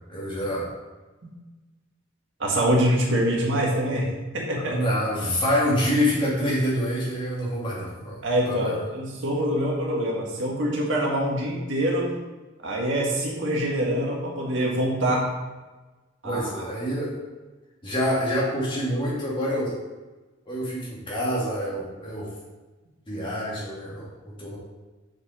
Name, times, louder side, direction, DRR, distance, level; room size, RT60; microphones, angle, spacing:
voice 1, 0.1-0.7 4.5-8.8 16.2-17.2 17.8-19.7 20.5-22.3 23.1-24.6, equal, 25° left, -5 dB, 2.3 m, -27 dB
voice 2, 2.4-4.1 4.3-4.8 8.2-12.2 12.6-15.3 16.2-16.6, right 1 dB, 70° right, -2 dB, 1.8 m, -25 dB
6.9 x 5.6 x 5.1 m, 1.2 s
head